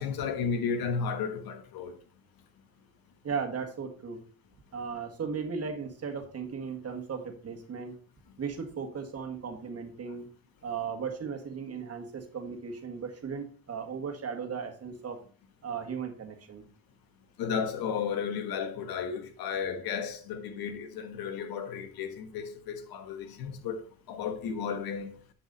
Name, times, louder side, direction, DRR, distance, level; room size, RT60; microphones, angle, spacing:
voice 1, 0.0-2.0 17.4-23.8 24.1-25.1, left 6 dB, 70° left, 1.4 m, -33 dB
voice 2, 3.2-4.2 4.7-8.0 8.4-10.3 10.6-15.2 15.6-16.6, right 6 dB, 40° right, 1.8 m, -36 dB
10.5 x 4.8 x 4.0 m
cardioid pair, 90°, 37 cm